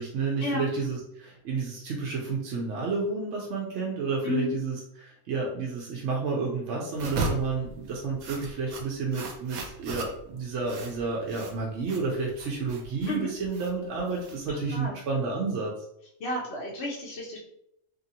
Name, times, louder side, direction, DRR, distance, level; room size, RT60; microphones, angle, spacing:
voice 1, 0.0-15.7, right 4 dB, 65° right, -2 dB, 0.8 m, -31 dB
voice 2, 4.2-4.6 13.1-13.3 14.5-15.0 16.2-17.4, left 1 dB, 55° left, -4 dB, 0.8 m, -32 dB
sound 1, 6.9-14.8, right 3 dB, 85° right, 1.1 m, -37 dB
2.8 x 2.6 x 2.7 m, 0.75 s
omnidirectional pair, 1.5 m